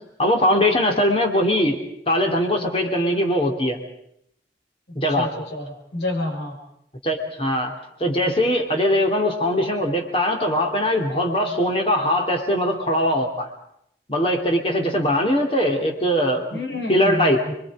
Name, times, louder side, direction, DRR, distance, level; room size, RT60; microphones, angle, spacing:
voice 1, 0.2-1.8 2.1-3.8 4.9-5.3 7.0-7.7 8.0-13.5 14.1-16.6 16.9-17.4, equal, 30° left, 3 dB, 3.0 m, -21 dB
voice 2, 5.1-6.6 16.5-17.5, left 2 dB, 75° left, 3 dB, 5.3 m, -29 dB
30.0 x 22.5 x 5.0 m, 0.73 s
head